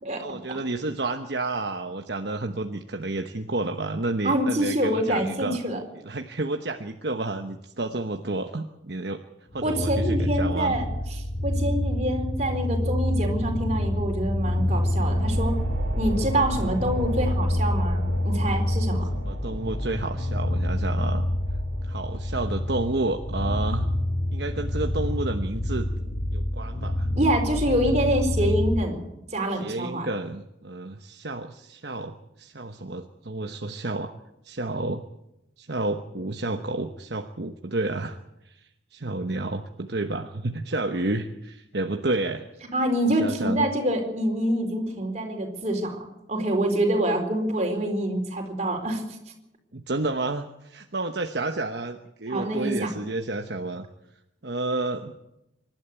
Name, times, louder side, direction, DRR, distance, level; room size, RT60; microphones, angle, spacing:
voice 1, 0.2-5.6 6.0-9.2 9.5-10.8 19.3-21.3 21.8-23.9 24.3-25.9 26.3-27.1 29.6-34.1 34.4-35.0 35.6-38.2 38.4-42.5 43.2-43.6 49.7-53.9 54.4-55.1, right 2 dB, 60° right, 5 dB, 1.1 m, -30 dB
voice 2, 4.2-5.8 9.6-10.9 11.4-15.6 16.0-19.1 27.1-29.0 29.3-30.1 42.7-49.0 52.3-52.9, right 1 dB, 35° right, 3 dB, 4.3 m, -26 dB
sound 1, 9.5-28.8, left 1 dB, 35° left, 1.2 m, -27 dB
sound 2, 14.1-25.3, equal, 75° right, 3.4 m, -36 dB
25.5 x 12.0 x 8.4 m, 0.88 s
head